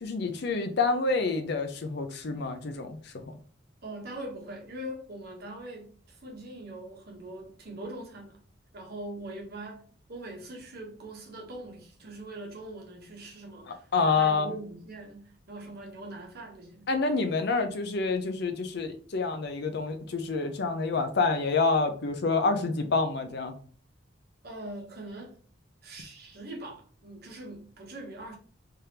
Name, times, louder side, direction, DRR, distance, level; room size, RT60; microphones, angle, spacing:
voice 1, 0.0-3.2 13.9-14.5 16.9-23.5, left 4 dB, 60° left, 0.6 m, -27 dB
voice 2, 3.8-8.4 8.7-16.9 24.4-25.4 25.8-28.4, right 1 dB, 55° right, 1.0 m, -42 dB
3.5 x 3.3 x 2.8 m
head